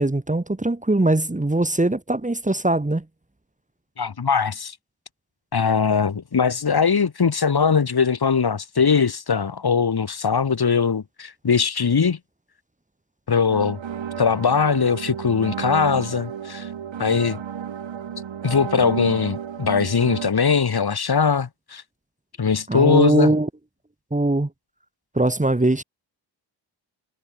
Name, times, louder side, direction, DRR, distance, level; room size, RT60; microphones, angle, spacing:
voice 1, 0.0-3.0 22.7-23.5 24.1-24.5 25.1-25.8, right 2 dB, 15° right, 3.0 m, -21 dB
voice 2, 4.0-4.8 5.5-12.2 13.3-13.8 14.2-16.7 17.0-17.4 18.4-21.8 22.4-23.3, left 6 dB, 55° left, 4.1 m, -21 dB
sound 1, 13.5-20.3, right 8 dB, 80° right, 4.0 m, -32 dB
cardioid pair, 70°, 45 cm